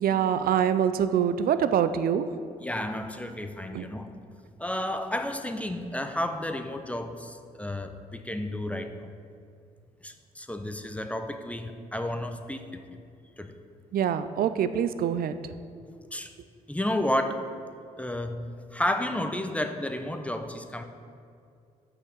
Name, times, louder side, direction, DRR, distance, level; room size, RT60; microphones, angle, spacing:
voice 1, 0.0-2.3 3.7-3.9 13.9-15.4, right 9 dB, 55° right, 12 dB, 0.5 m, -25 dB
voice 2, 2.6-4.1 4.6-9.1 10.0-13.0 13.4-13.5 16.1-16.3 16.7-17.5 18.0-20.8, left 1 dB, 5° left, 7 dB, 0.8 m, -32 dB
6.6 x 5.7 x 6.8 m, 2.4 s
hypercardioid pair, 45°, 18 cm